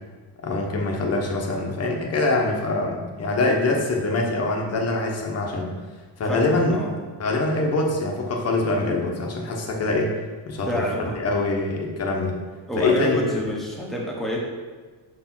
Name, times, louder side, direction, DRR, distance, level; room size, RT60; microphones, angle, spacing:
voice 1, 0.4-5.7 6.2-6.8 7.2-10.2 10.5-12.4 12.8-13.4, left 2 dB, 30° left, 0 dB, 1.0 m, -24 dB
voice 2, 6.3-7.0 10.7-11.2 12.7-14.4, equal, ahead, -3 dB, 1.1 m, -27 dB
6.5 x 4.6 x 6.0 m, 1.4 s
cardioid pair, 170°, 47 cm